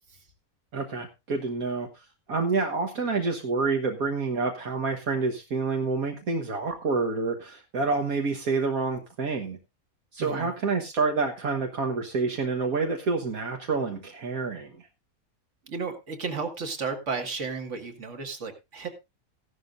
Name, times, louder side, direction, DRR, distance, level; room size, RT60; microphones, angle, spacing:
voice 1, 0.7-1.9 2.3-9.6 10.1-14.8, right 4 dB, 75° right, 2 dB, 1.8 m, -28 dB
voice 2, 10.2-10.5 15.7-18.9, right 4 dB, 55° right, 6 dB, 2.1 m, -33 dB
15.0 x 12.0 x 2.5 m, 0.25 s
omnidirectional pair, 1.5 m